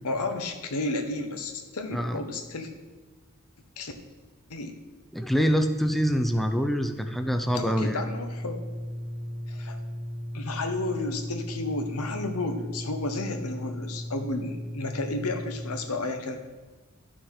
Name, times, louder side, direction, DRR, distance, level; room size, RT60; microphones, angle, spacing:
voice 1, 0.0-2.7 3.8-3.9 4.5-4.7 7.5-8.6 9.5-9.8 10.3-16.4, left 2 dB, 80° left, 6 dB, 1.0 m, -32 dB
voice 2, 5.1-8.0, equal, ahead, 5 dB, 0.5 m, -25 dB
sound 1, 6.8-15.7, equal, 85° right, 1.6 m, -36 dB
12.0 x 6.2 x 4.8 m, 1.3 s
head